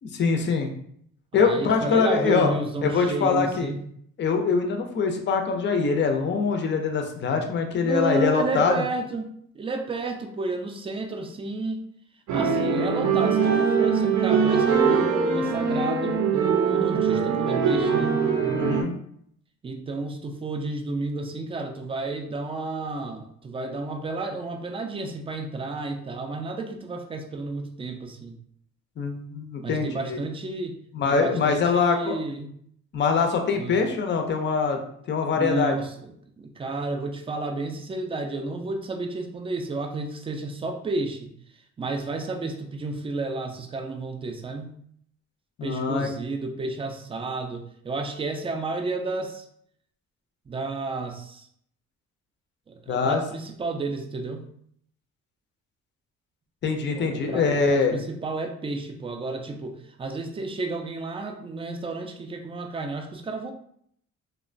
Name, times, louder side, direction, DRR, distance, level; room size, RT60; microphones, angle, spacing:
voice 1, 0.0-0.7 1.3-2.5 2.8-3.7 4.2-8.8 18.5-18.9 29.0-30.2 30.9-32.2 32.9-34.8 35.1-35.8 45.6-46.1 52.9-53.2 56.6-57.9, left 5 dB, 40° left, 4 dB, 0.5 m, -23 dB
voice 2, 1.3-3.8 7.8-9.3 9.5-11.8 12.3-18.2 19.6-28.4 29.6-30.8 31.1-32.5 33.5-33.8 35.3-36.1 36.4-41.3 41.8-44.8 45.6-49.5 50.5-51.5 52.7-54.5 56.9-63.5, right 3 dB, 20° right, 5 dB, 0.3 m, -31 dB
sound 1, 12.3-18.8, right 5 dB, 65° right, 0.6 m, -22 dB
2.9 x 2.1 x 2.5 m, 0.68 s
cardioid pair, 90°, 30 cm